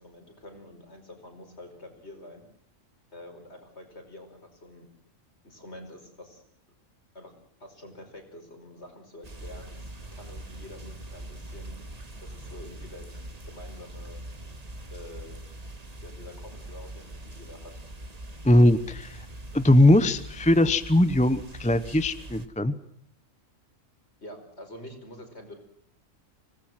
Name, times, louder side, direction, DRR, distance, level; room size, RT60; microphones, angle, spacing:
voice 1, 0.0-2.4 3.1-4.9 5.4-6.4 7.1-7.3 7.6-11.8 12.2-13.1 13.4-14.2 14.9-15.4 16.0-17.8 24.2-25.6, left 1 dB, 55° left, 4 dB, 5.4 m, -46 dB
sound 1, 9.2-22.5, right 1 dB, 30° right, 1.7 m, -42 dB
voice 2, 18.4-19.2 19.5-22.7, left 1 dB, 5° left, 12 dB, 0.8 m, -20 dB
25.5 x 19.0 x 7.7 m, 0.66 s
omnidirectional pair, 1.4 m